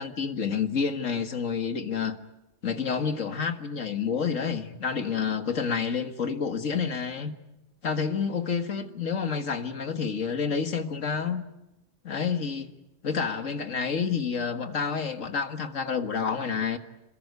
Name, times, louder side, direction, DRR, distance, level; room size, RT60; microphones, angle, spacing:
voice 1, 0.0-2.2 2.6-7.3 7.8-11.4 12.0-12.8 13.0-16.8, left 6 dB, 80° left, 2.1 m, -29 dB
26.5 x 21.5 x 9.6 m
omnidirectional pair, 1.3 m